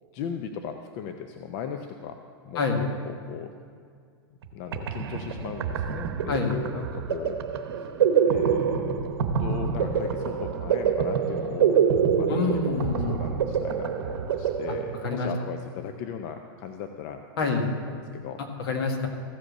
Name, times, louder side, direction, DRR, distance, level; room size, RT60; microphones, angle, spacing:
voice 1, 0.1-2.2 2.5-2.6 3.0-3.5 4.5-7.4 7.8-7.9 8.2-9.1 9.4-11.8 12.2-12.8 13.1-17.2 17.9-18.4, left 7 dB, 45° left, 6 dB, 0.6 m, -37 dB
sound 1, 4.4-4.5 4.7-15.3, right 7 dB, 75° right, 0.9 m, -26 dB
voice 2, 12.3-13.2 15.0-15.3 17.4-17.7 18.6-19.1, left 4 dB, 70° left, 3 dB, 1.7 m, -26 dB
15.0 x 5.1 x 6.7 m, 2.1 s
hypercardioid pair, 130°, 13 cm